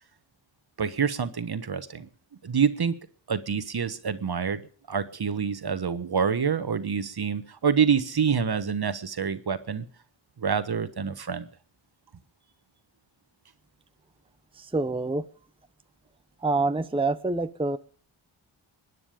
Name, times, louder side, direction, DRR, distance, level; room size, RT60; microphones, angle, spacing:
voice 1, 0.8-2.1 2.4-2.9 3.3-4.6 4.9-9.8 10.4-11.5, right 6 dB, 50° right, 12 dB, 1.4 m, -27 dB
voice 2, 14.7-15.2 16.4-17.8, right 3 dB, 10° right, 10 dB, 0.9 m, -26 dB
22.5 x 9.7 x 5.1 m, 0.43 s
cardioid pair, 40°, 50 cm